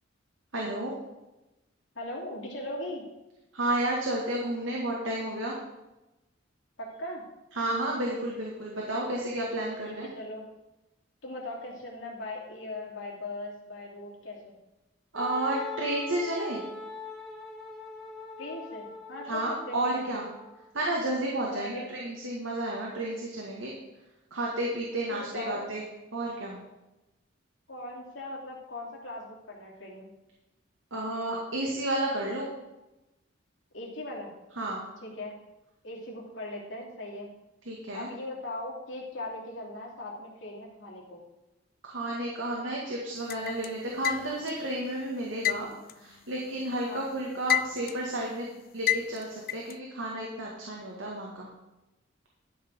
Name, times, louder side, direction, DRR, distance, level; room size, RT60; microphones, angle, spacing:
voice 1, 0.5-0.9 3.5-5.6 7.6-10.1 15.1-16.6 19.2-20.2 20.7-23.7 24.3-25.8 26.1-26.6 30.9-32.5 34.6-34.8 37.7-38.1 41.8-45.7 46.0-48.5 48.7-51.5, right 1 dB, 85° right, -2 dB, 1.9 m, -31 dB
voice 2, 1.9-3.0 6.8-7.2 9.8-10.5 11.2-14.5 18.4-20.2 21.5-21.9 25.1-25.7 27.7-30.1 33.7-34.3 35.0-35.3 35.8-37.3 37.9-41.2 46.9-47.2, left 1 dB, 75° left, -2 dB, 2.9 m, -39 dB
Wind instrument woodwind instrument, 15.2-20.8, left 4 dB, ahead, 2.2 m, -42 dB
sound 1, 43.3-44.6 45.4-46.8 47.2-48.1 48.9-49.7, left 12 dB, 50° left, 0.3 m, -29 dB
12.0 x 5.9 x 6.3 m, 0.99 s
head